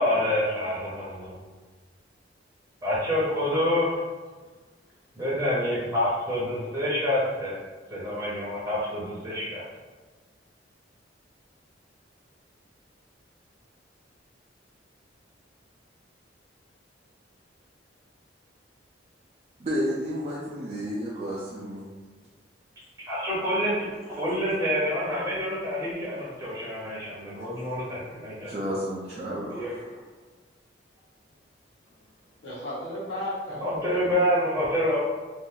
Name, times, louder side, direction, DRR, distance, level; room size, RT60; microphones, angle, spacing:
voice 1, 0.0-1.4 2.8-4.0 5.2-7.5 7.9-9.6 23.0-28.5 29.5-29.7 33.6-35.0, left 1 dB, 20° right, -8 dB, 0.8 m, -27 dB
voice 2, 19.6-21.9 27.3-27.4 28.5-30.0, equal, 35° right, -8 dB, 0.5 m, -32 dB
voice 3, 32.4-34.4, left 1 dB, 85° left, -6 dB, 1.1 m, -36 dB
2.7 x 2.5 x 3.7 m, 1.3 s
head